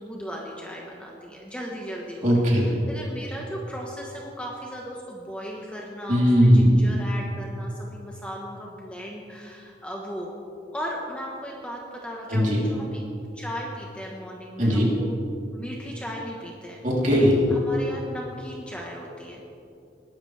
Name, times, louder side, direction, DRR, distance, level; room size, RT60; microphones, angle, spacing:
voice 1, 0.0-10.3 10.7-13.0 13.3-15.1 15.5-16.8 17.5-19.4, equal, 5° left, -2 dB, 1.3 m, -37 dB
voice 2, 2.2-2.7 6.1-6.8 12.3-12.6 14.6-14.9 16.8-17.4, equal, 45° right, -4 dB, 3.5 m, -18 dB
21.0 x 12.0 x 3.4 m, 2.5 s
head